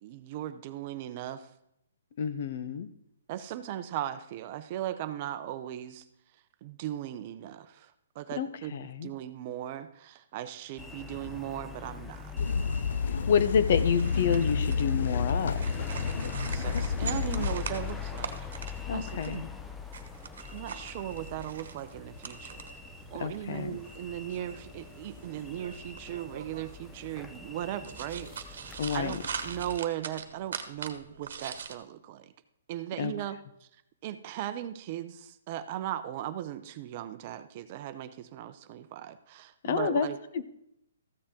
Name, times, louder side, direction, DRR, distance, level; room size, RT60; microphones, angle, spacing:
voice 1, 0.0-1.5 3.3-6.0 6.6-12.3 16.4-18.4 18.9-19.4 20.5-22.7 23.1-32.3 32.7-33.4 34.0-40.2, right 12 dB, 35° right, 11 dB, 0.7 m, -38 dB
voice 2, 2.2-2.9 8.3-9.1 13.3-15.7 18.9-19.5 23.2-23.8 28.8-29.2 33.0-33.1 39.6-40.1 40.3-40.5, left 7 dB, 50° left, 12 dB, 0.8 m, -29 dB
sound 1, 10.8-29.8, left 6 dB, 5° left, 0.6 m, -42 dB
sound 2, 12.4-17.5, left 5 dB, 70° left, 0.3 m, -29 dB
sound 3, 13.7-31.7, right 6 dB, 65° right, 1.2 m, -44 dB
14.0 x 7.1 x 3.8 m, 0.77 s
hypercardioid pair, 160°, 0 cm